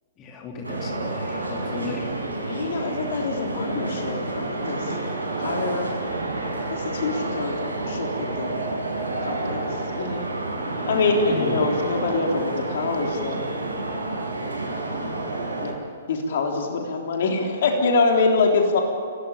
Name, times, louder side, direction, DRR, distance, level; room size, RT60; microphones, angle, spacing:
voice 1, 0.2-2.1 11.3-11.6, left 3 dB, 25° left, 1 dB, 3.4 m, -35 dB
sound 1, 0.6-15.7, right 2 dB, 75° right, 5.9 m, -29 dB
voice 2, 2.5-5.0 5.4-5.9 6.7-8.6 9.2-10.3 10.9-13.4 14.9-15.1 15.6-15.7 16.1-18.8, left 4 dB, 50° left, 2 dB, 3.6 m, -25 dB
25.5 x 18.5 x 8.9 m, 2.4 s
figure-of-eight pair, 120°, 0 cm